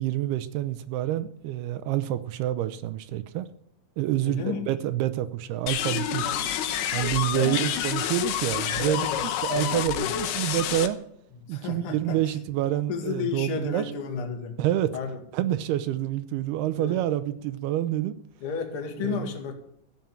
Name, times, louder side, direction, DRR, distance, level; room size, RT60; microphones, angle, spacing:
voice 1, 0.0-3.5 4.0-6.3 6.9-11.0 11.5-13.9 14.6-14.9 15.3-18.2 19.0-19.3, right 13 dB, 80° right, 2.6 m, -28 dB
voice 2, 4.2-4.7 6.2-6.4 7.3-7.7 8.8-9.2 9.5-10.0 11.5-12.3 12.9-14.6 14.9-15.2 16.8-17.0 18.4-19.5, left 5 dB, 40° left, 2.4 m, -33 dB
sound 1, 5.7-10.9, left 10 dB, 80° left, 2.9 m, -28 dB
15.0 x 7.4 x 8.9 m
omnidirectional pair, 4.7 m